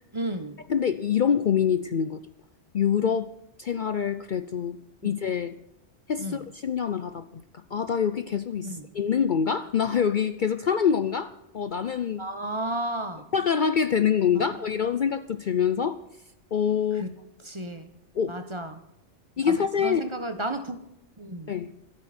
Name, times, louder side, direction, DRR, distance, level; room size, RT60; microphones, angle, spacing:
voice 1, 0.1-0.6 5.0-5.1 6.2-6.4 8.6-8.9 12.2-13.3 14.3-14.5 17.0-17.1 17.4-17.9 18.3-18.8 19.4-20.8 21.2-21.5, right 1 dB, 25° right, 8 dB, 1.2 m, -33 dB
voice 2, 0.7-2.2 2.7-3.3 3.6-4.8 5.0-5.5 6.1-7.2 7.5-12.2 13.3-16.0 16.5-17.1 18.1-18.3 19.4-20.0 21.5-21.7, left 7 dB, 50° left, 12 dB, 0.7 m, -25 dB
26.0 x 8.8 x 4.4 m, 0.87 s
omnidirectional pair, 1.2 m